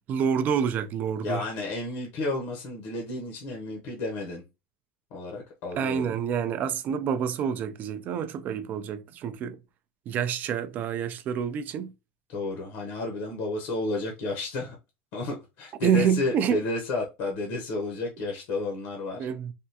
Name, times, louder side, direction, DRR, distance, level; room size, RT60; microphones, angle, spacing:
voice 1, 0.1-1.4 5.8-9.6 10.1-11.9 15.8-16.6 19.2-19.5, right 7 dB, 35° right, 0.4 m, -27 dB
voice 2, 1.2-4.4 5.1-6.2 12.3-14.8 15.1-19.3, left 2 dB, 60° left, 0.8 m, -32 dB
3.4 x 2.2 x 2.8 m
supercardioid pair, 145°, 5 cm